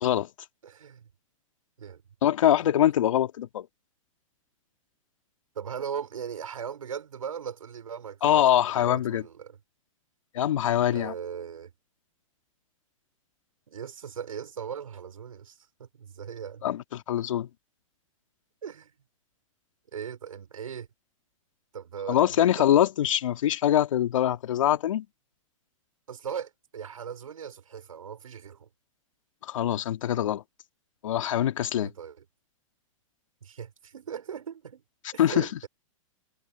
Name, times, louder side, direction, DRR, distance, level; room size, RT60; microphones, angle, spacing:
voice 1, 0.6-1.1 1.8-2.0 2.4-2.5 5.5-9.6 10.9-11.7 13.7-16.6 18.6-18.9 19.9-20.9 21.7-22.7 26.1-28.7 31.7-32.2 33.4-34.8 35.1-35.7, right 7 dB, 80° right, 6.2 m, -39 dB
voice 2, 2.2-3.7 8.2-9.2 10.3-11.1 16.6-17.5 22.1-25.0 29.5-30.4 31.0-31.9 35.2-35.5, left 11 dB, 70° left, 2.4 m, -23 dB
hypercardioid pair, 120°, 17 cm